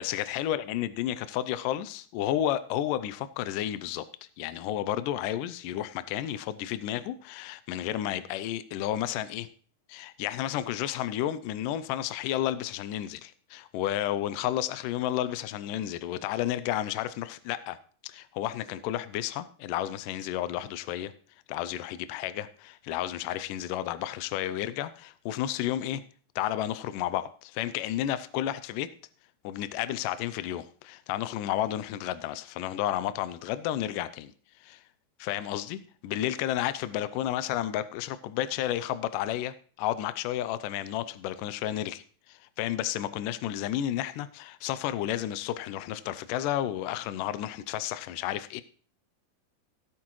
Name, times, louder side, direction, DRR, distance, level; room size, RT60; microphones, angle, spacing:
voice 1, 0.0-4.0 4.4-9.5 9.9-17.8 18.0-21.1 21.5-26.0 26.4-28.9 29.4-34.3 34.6-34.8 35.2-48.6, left 12 dB, 80° left, 13 dB, 2.2 m, -32 dB
17.0 x 8.4 x 3.1 m, 0.44 s
omnidirectional pair, 3.9 m